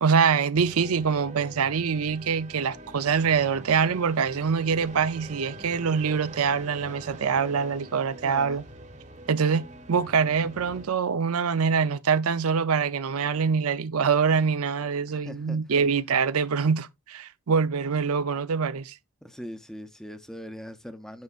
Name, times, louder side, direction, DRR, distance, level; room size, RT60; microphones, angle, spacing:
voice 1, 0.0-8.6 9.3-18.9, right 6 dB, 75° right, 0.5 m, -24 dB
sound 1, 0.5-10.9, right 1 dB, 30° right, 0.9 m, -44 dB
voice 2, 8.2-8.6 15.1-15.8 19.2-21.2, equal, ahead, 0.6 m, -41 dB
9.6 x 6.6 x 2.4 m
head